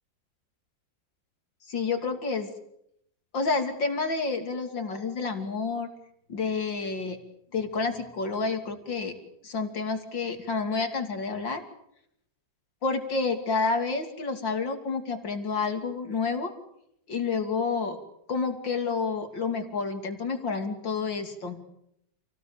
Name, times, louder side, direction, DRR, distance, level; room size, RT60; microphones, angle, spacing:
voice 1, 1.7-2.5 3.3-5.9 6.3-7.2 7.5-9.1 9.4-11.6 12.8-16.5 17.1-18.0 18.3-21.6, left 4 dB, 75° left, 6 dB, 3.6 m, -29 dB
29.0 x 19.0 x 8.9 m, 0.75 s
omnidirectional pair, 2.1 m